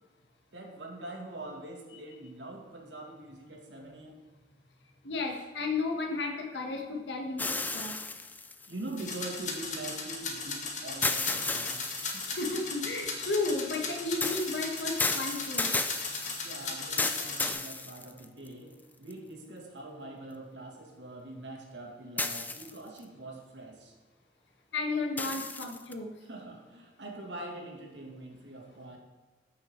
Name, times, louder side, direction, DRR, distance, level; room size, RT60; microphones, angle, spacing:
voice 1, 0.5-4.2 5.3-5.4 8.7-12.3 16.4-23.9 26.2-29.0, right 2 dB, 80° right, 1 dB, 2.2 m, -44 dB
voice 2, 5.0-7.9 12.3-15.7 24.7-26.1, left 3 dB, 75° left, 2 dB, 1.5 m, -33 dB
sound 1, 7.4-9.6 11.0-12.6 14.2-18.5 19.1-19.2 22.2-23.0 25.2-25.9, left 3 dB, 10° left, 0.4 m, -33 dB
sound 2, 9.0-17.5, left 4 dB, 45° left, 1.6 m, -37 dB
14.5 x 6.4 x 4.5 m, 1.3 s
head